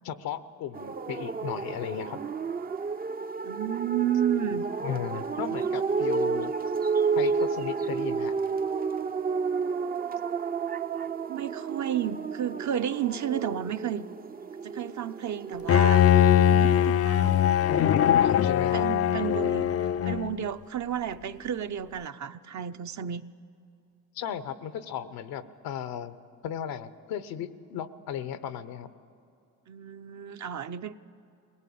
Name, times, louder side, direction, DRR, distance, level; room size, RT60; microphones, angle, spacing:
voice 1, 0.0-2.2 4.8-6.5 7.2-8.3 17.7-18.9 24.1-26.2 26.4-28.9, left 9 dB, 90° left, 13 dB, 0.9 m, -35 dB
sound 1, 0.7-16.7, right 5 dB, 25° right, 0.5 m, -31 dB
voice 2, 3.4-4.6 11.3-14.0 14.6-16.1 16.3-17.7 18.4-19.7 20.0-23.2 29.7-31.0, right 9 dB, 55° right, 9 dB, 0.7 m, -32 dB
Bowed string instrument, 15.7-20.5, left 10 dB, 45° left, 0.4 m, -21 dB
21.0 x 18.5 x 8.5 m, 2.6 s
cardioid pair, 75°, 35 cm